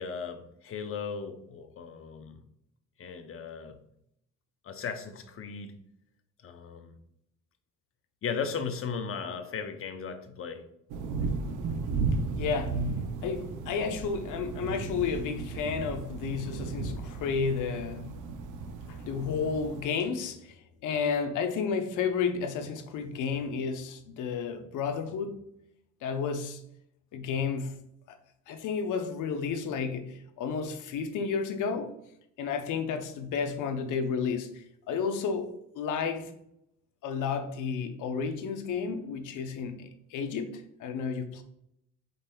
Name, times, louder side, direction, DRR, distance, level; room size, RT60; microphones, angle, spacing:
voice 1, 0.0-2.4 3.0-3.8 4.6-5.8 6.4-6.9 8.2-10.6, left 6 dB, 45° left, 0.7 m, -36 dB
sound 1, 10.9-19.8, right 4 dB, 85° right, 0.6 m, -34 dB
voice 2, 12.4-12.9 13.2-18.2 18.9-20.6 20.8-25.5 26.0-26.6 27.1-27.8 28.1-28.2 28.5-31.9 32.4-36.3 37.0-41.4, left 5 dB, 85° left, 0.7 m, -32 dB
5.2 x 4.1 x 2.2 m
cardioid pair, 90°, 30 cm